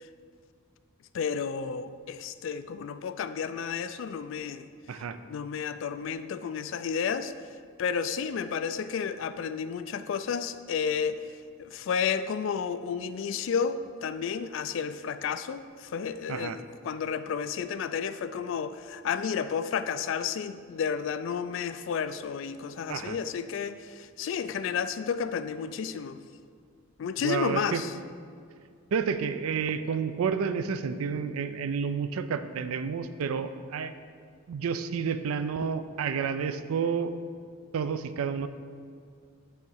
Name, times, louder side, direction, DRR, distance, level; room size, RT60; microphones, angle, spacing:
voice 1, 1.1-4.7 5.3-7.3 7.8-11.2 11.6-26.2 27.0-27.9, left 6 dB, 60° left, 12 dB, 0.3 m, -31 dB
voice 2, 4.9-5.2 16.3-16.6 22.9-23.2 27.2-27.8 28.9-33.9 34.5-37.1 37.7-38.5, right 6 dB, 90° right, 11 dB, 0.4 m, -30 dB
6.8 x 3.6 x 6.3 m, 2.2 s
head